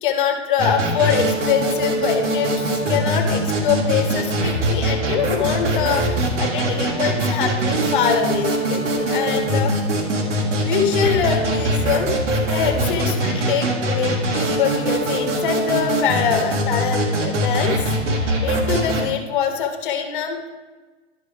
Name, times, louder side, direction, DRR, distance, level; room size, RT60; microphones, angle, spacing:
voice 1, 0.0-9.7 10.6-12.1 12.5-20.6, left 8 dB, 45° left, 5 dB, 1.2 m, -24 dB
sound 1, 0.6-19.0, right 1 dB, 75° right, 1.8 m, -22 dB
11.5 x 6.3 x 3.4 m, 1.2 s
hypercardioid pair, 160°, 36 cm